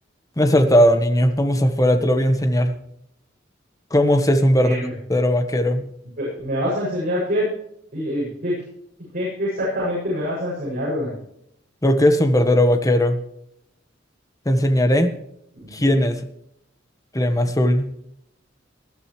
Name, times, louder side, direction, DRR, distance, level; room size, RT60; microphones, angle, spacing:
voice 1, 0.4-2.8 3.9-4.8 5.1-5.9 11.8-13.2 14.4-15.1 15.7-16.2 17.1-17.9, equal, 20° left, 7 dB, 1.3 m, -18 dB
voice 2, 4.6-4.9 6.2-7.4 7.9-8.6 9.1-11.1 15.6-16.0, equal, 50° right, -7 dB, 7.2 m, -25 dB
19.5 x 12.0 x 3.3 m, 0.75 s
head